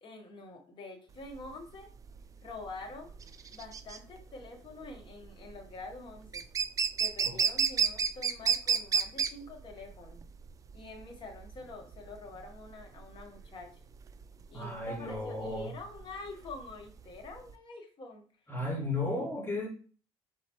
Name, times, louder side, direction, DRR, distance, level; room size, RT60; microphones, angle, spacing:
voice 1, 0.0-1.9 2.4-3.2 3.5-6.4 7.0-10.2 10.7-13.7 14.5-18.2, left 2 dB, 40° left, 1.3 m, -46 dB
sound 1, 1.2-17.5, right 6 dB, 25° right, 0.3 m, -32 dB
voice 2, 14.5-15.7 18.5-19.7, left 2 dB, 20° left, 2.3 m, -34 dB
4.3 x 4.1 x 3.0 m
cardioid pair, 120°, 12 cm